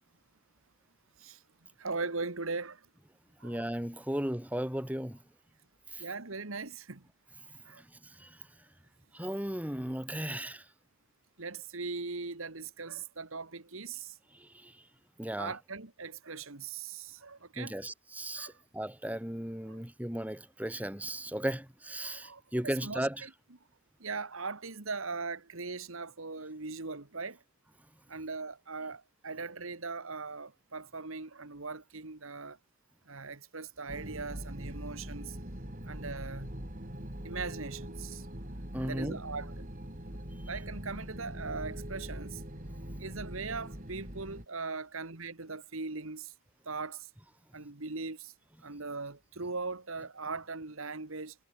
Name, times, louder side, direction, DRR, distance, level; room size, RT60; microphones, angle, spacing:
voice 1, 1.8-2.9 3.4-3.6 6.0-7.0 7.7-7.8 11.4-14.2 15.4-17.8 18.4-18.5 19.7-19.8 22.0-23.3 24.0-27.4 28.1-32.6 33.1-35.4 35.9-36.5 37.2-38.3 38.8-39.7 40.5-42.4 43.0-46.3 46.7-47.1 47.5-48.3 48.6-51.4, right 4 dB, 70° right, 1.8 m, -40 dB
voice 2, 3.4-5.2 5.9-6.0 8.2-8.4 9.1-10.6 14.3-14.7 15.2-15.5 17.6-23.3 38.7-39.2, right 1 dB, 5° right, 1.9 m, -36 dB
sound 1, 33.9-44.4, equal, 35° right, 4.4 m, -42 dB
head